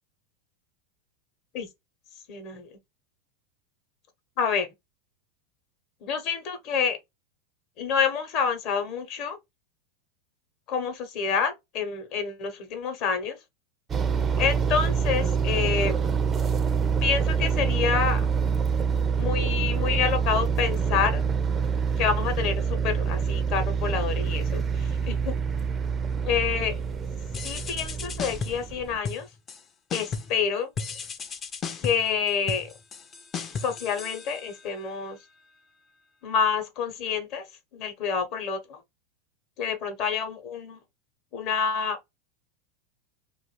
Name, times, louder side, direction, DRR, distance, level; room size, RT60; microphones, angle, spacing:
voice 1, 2.3-2.7 4.4-4.7 6.0-7.0 7.8-9.4 10.7-13.4 14.4-15.9 17.0-18.2 19.2-21.2 22.0-25.3 26.3-26.8 27.4-29.3 29.9-30.7 31.8-32.7 33.6-35.2 36.2-37.4 37.7-38.8 39.6-40.8 41.3-42.0, left 6 dB, 50° left, 0.9 m, -28 dB
sound 1, 13.9-29.0, right 6 dB, 25° right, 0.4 m, -26 dB
sound 2, 27.3-28.7 29.0-29.6 29.9-30.4 30.8-34.8, left 5 dB, 30° left, 0.5 m, -35 dB
2.4 x 2.4 x 3.1 m
hypercardioid pair, 105°, 0 cm